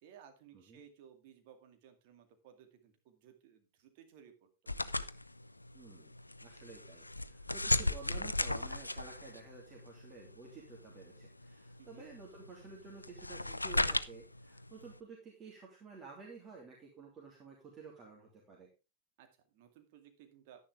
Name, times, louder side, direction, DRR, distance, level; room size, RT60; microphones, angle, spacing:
voice 1, 0.0-4.7 11.8-12.1 19.2-20.7, right 8 dB, 50° right, 5 dB, 2.3 m, -59 dB
sound 1, 4.7-15.0, left 2 dB, 85° left, 0.5 m, -37 dB
voice 2, 5.7-6.1 6.4-18.7, right 4 dB, 25° right, -2 dB, 3.0 m, -52 dB
10.5 x 10.0 x 3.6 m, 0.28 s
figure-of-eight pair, 90°, 0 cm